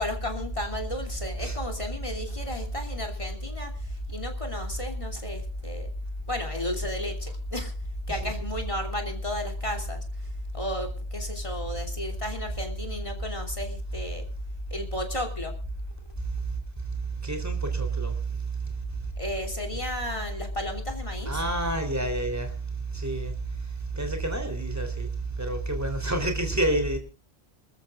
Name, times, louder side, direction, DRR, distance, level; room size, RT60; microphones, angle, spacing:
voice 1, 0.0-5.9 6.3-7.7 8.1-14.3 14.7-15.5 19.2-21.4, left 1 dB, 30° left, 3.1 m, -32 dB
voice 2, 17.2-18.1 21.3-22.5 22.9-23.3 23.9-25.1 25.4-27.0, right 2 dB, 15° right, 3.4 m, -28 dB
27.0 x 14.0 x 2.5 m
omnidirectional pair, 1.1 m